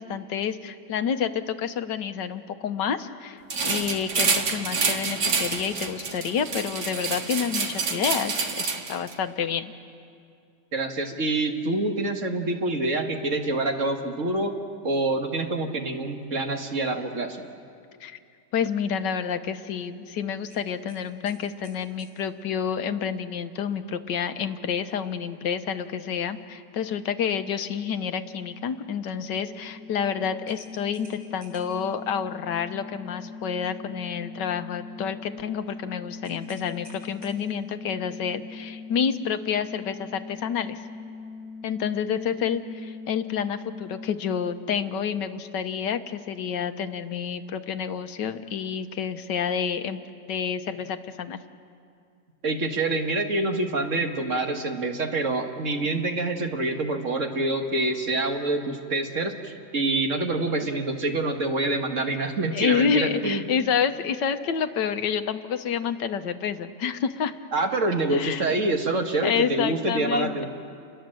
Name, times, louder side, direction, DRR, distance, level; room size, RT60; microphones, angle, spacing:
voice 1, 0.0-9.7 18.0-18.2 18.5-40.8 41.6-50.0 50.3-51.4 62.5-67.3 68.1-68.5 69.2-70.5, left 7 dB, 85° left, 9 dB, 1.6 m, -29 dB
sound 1, 3.5-9.1, right 4 dB, 70° right, 2.2 m, -28 dB
voice 2, 10.7-14.6 14.8-17.5 52.4-63.4 67.5-70.5, right 2 dB, 45° right, 4 dB, 1.9 m, -26 dB
sound 2, 20.5-22.2 24.8-25.0 25.4-25.5 30.5-31.9 36.2-37.7, right 1 dB, 30° right, 7.8 m, -53 dB
sound 3, 27.7-45.2, left 4 dB, ahead, 0.4 m, -42 dB
29.5 x 21.0 x 7.7 m, 2.4 s
omnidirectional pair, 1.9 m